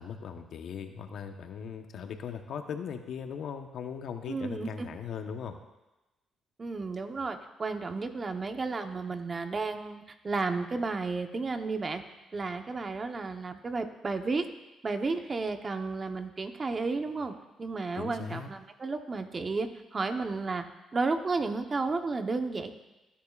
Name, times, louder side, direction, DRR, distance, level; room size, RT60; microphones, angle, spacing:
voice 1, 0.0-5.6 18.0-18.5, left 7 dB, 70° left, 6 dB, 1.0 m, -39 dB
voice 2, 4.3-4.9 6.6-12.0 12.3-14.5 14.8-20.6 20.9-22.7, right 3 dB, 35° right, 7 dB, 1.0 m, -32 dB
18.5 x 10.5 x 2.4 m, 1.0 s
cardioid pair, 90°, 0 cm